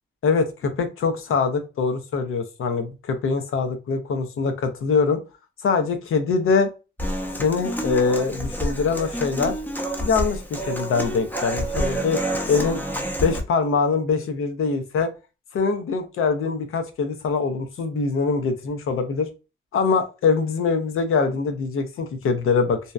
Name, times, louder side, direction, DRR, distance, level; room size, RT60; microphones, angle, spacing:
voice 1, 0.2-5.2 5.6-6.7 7.4-9.5 10.0-12.2 12.5-12.8 13.2-15.1 15.5-19.3 19.7-22.8, left 4 dB, 90° left, 7 dB, 0.5 m, -23 dB
Human voice / Acoustic guitar, 7.0-13.4, equal, 10° left, 0.5 m, -28 dB
2.7 x 2.0 x 2.3 m, 0.30 s
cardioid pair, 90°, 21 cm